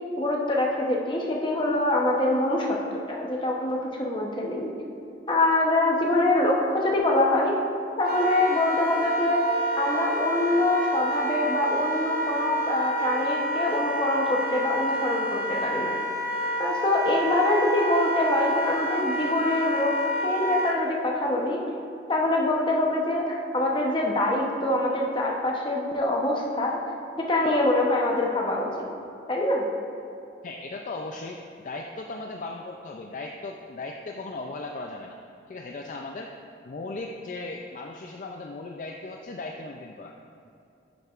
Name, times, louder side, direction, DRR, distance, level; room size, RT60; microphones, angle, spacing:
voice 1, 0.2-2.8 3.1-4.7 5.3-7.6 8.0-9.5 9.8-16.0 16.6-21.6 22.1-26.8 27.2-28.8 29.3-29.6, left 1 dB, 25° left, -1 dB, 0.8 m, -24 dB
Wind instrument woodwind instrument, 8.0-20.8, equal, 50° right, 0.7 m, -29 dB
voice 2, 30.4-35.2 35.5-36.4 36.6-40.1, left 2 dB, 45° left, 2 dB, 0.3 m, -37 dB
10.0 x 6.6 x 2.4 m, 2.7 s
head